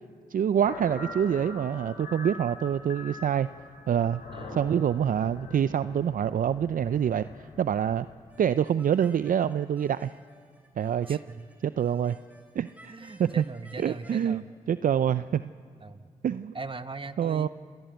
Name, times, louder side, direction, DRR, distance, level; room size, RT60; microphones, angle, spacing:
voice 1, 0.3-3.5 3.9-4.2 4.5-8.1 8.4-10.1 10.8-11.2 11.6-12.2 12.6-12.9 13.2-13.4 13.8-14.4 14.7-15.4 16.2-16.5 17.2-17.5, right 9 dB, 60° right, 14 dB, 0.5 m, -26 dB
sound 1, 0.6-8.2, left 3 dB, 85° left, 3.6 m, -44 dB
voice 2, 4.3-4.8 11.1-11.5 12.9-14.5 15.8-16.1 16.5-17.5, right 3 dB, 35° right, 10 dB, 1.4 m, -40 dB
sound 2, 8.3-14.3, right 1 dB, 10° right, 3.7 m, -57 dB
27.5 x 18.5 x 7.9 m, 2.2 s
supercardioid pair, 50°, 16 cm